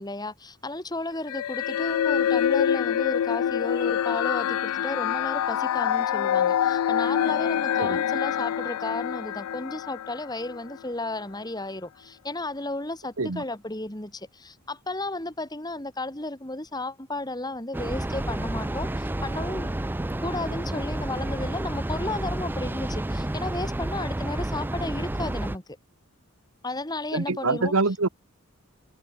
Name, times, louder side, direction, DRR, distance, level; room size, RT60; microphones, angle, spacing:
voice 1, 0.0-19.7 20.2-25.6 26.6-27.7, left 2 dB, 20° left, 2.3 m, -33 dB
sound 1, 1.3-10.8, left 9 dB, 85° left, 0.3 m, -26 dB
Train, 17.7-25.6, right 1 dB, 10° right, 0.3 m, -30 dB
voice 2, 27.1-28.1, right 3 dB, 70° right, 1.3 m, -25 dB
head